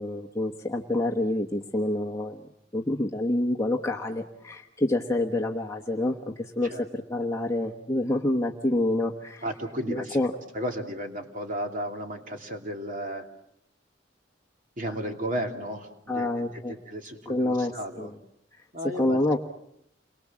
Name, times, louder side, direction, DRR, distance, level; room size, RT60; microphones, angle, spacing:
voice 1, 0.0-2.4 2.7-9.4 9.9-10.3 16.1-16.8 17.3-18.1 18.5-18.6 18.9-19.4, left 1 dB, 15° left, 0 dB, 1.1 m, -27 dB
voice 2, 9.4-10.2 10.5-13.3 14.8-18.1 18.7-19.4, equal, 45° right, 4 dB, 2.9 m, -34 dB
29.0 x 23.0 x 7.5 m, 0.77 s
head